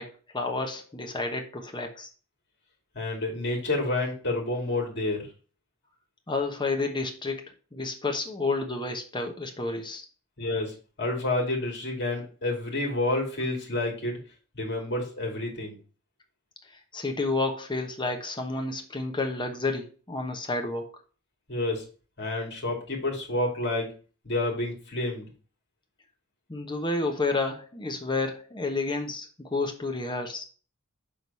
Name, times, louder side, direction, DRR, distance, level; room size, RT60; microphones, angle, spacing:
voice 1, 0.0-2.1 6.3-7.4 7.7-10.1 16.9-20.9 26.5-30.4, left 3 dB, 20° left, 3 dB, 1.0 m, -30 dB
voice 2, 2.9-5.3 10.4-14.2 14.5-15.8 21.5-21.8 22.2-23.9 24.2-25.3, left 2 dB, 55° left, 1 dB, 2.4 m, -29 dB
6.3 x 3.8 x 5.4 m, 0.38 s
head